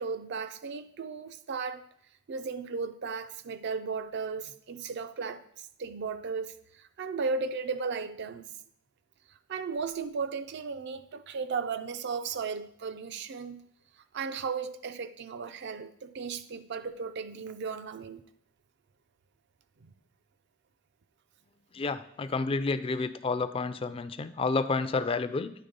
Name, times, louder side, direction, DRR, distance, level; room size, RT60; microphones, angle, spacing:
voice 1, 0.0-1.8 2.3-8.5 9.5-13.7 14.1-18.2 19.8-19.9, right 5 dB, 60° right, 0.5 m, -35 dB
voice 2, 21.7-25.5, left 4 dB, 30° left, 0.4 m, -30 dB
9.3 x 3.5 x 5.3 m
head